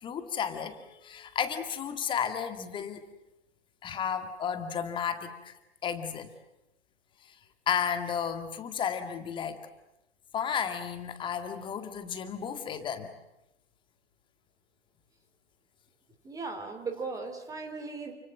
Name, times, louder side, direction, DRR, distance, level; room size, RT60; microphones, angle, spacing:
voice 1, 0.0-3.1 3.8-5.5 5.8-6.3 7.7-9.7 10.3-13.1, left 8 dB, 15° left, 9 dB, 2.1 m, -33 dB
voice 2, 16.2-18.1, right 4 dB, 10° right, 6 dB, 3.1 m, -37 dB
29.0 x 25.0 x 7.5 m, 0.90 s
figure-of-eight pair, 120°, 33 cm